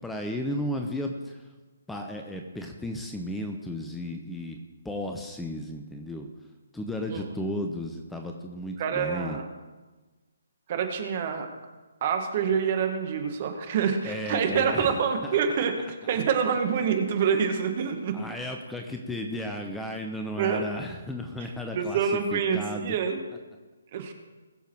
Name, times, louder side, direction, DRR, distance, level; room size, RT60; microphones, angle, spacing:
voice 1, 0.0-1.4 1.9-4.6 4.8-6.3 6.7-9.4 14.0-14.9 15.2-15.4 18.1-23.0, left 1 dB, 5° left, 3 dB, 0.9 m, -34 dB
voice 2, 8.8-9.5 10.7-11.5 12.0-18.2 20.4-20.7 21.4-21.5 21.8-23.2 23.9-24.1, right 6 dB, 35° right, 5 dB, 1.8 m, -26 dB
20.5 x 7.0 x 4.7 m, 1.2 s
figure-of-eight pair, 135°, 0 cm